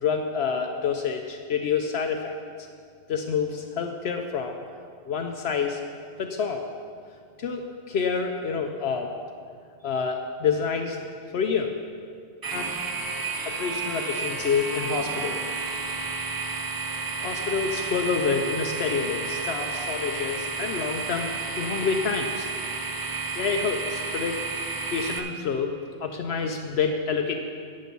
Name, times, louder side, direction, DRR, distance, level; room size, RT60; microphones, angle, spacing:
voice 1, 0.0-2.3 3.1-4.6 5.1-5.8 6.2-6.7 7.4-9.1 9.8-11.0 11.3-11.7 12.5-12.7 13.4-15.4 17.2-21.3 21.6-22.5 23.3-27.3, left 5 dB, 70° left, 4 dB, 0.9 m, -28 dB
sound 1, 12.4-25.2, right 4 dB, 35° right, 0.4 m, -31 dB
10.5 x 7.6 x 5.3 m, 2.2 s
omnidirectional pair, 1.1 m